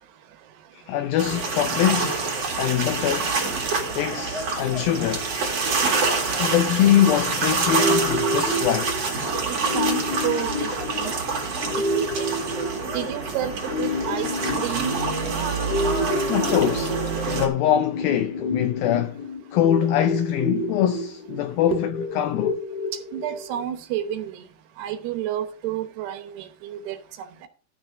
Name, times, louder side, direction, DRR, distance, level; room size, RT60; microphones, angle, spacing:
voice 1, 0.7-2.3 2.6-3.4 3.9-5.7 6.4-9.0 16.3-17.0 17.3-19.2 19.5-21.9 22.2-22.6, left 11 dB, 80° left, 2.1 m, -23 dB
sound 1, 1.2-17.5, right 4 dB, 45° right, 2.8 m, -26 dB
sound 2, 7.6-23.6, left 1 dB, 65° left, 3.6 m, -29 dB
voice 2, 9.5-11.1 11.9-12.3 12.9-14.3 14.5-15.0 21.7-21.8 22.9-24.5 24.8-27.5, right 11 dB, 75° right, 3.0 m, -30 dB
12.5 x 6.0 x 5.0 m
omnidirectional pair, 4.8 m